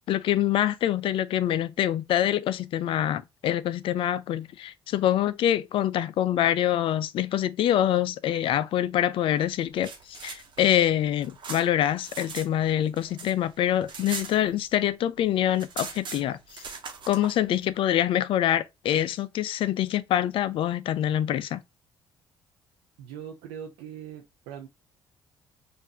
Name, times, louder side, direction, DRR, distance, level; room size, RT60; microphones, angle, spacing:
voice 1, 0.1-16.6 17.1-21.6, left 11 dB, 65° left, 0.4 m, -25 dB
sound 1, 9.6-12.5 12.8-14.9 15.2-15.3 15.5-17.3, right 5 dB, 55° right, 1.1 m, -40 dB
voice 2, 23.0-24.7, right 8 dB, 85° right, 0.6 m, -41 dB
5.3 x 2.6 x 2.8 m
supercardioid pair, 60°, 10 cm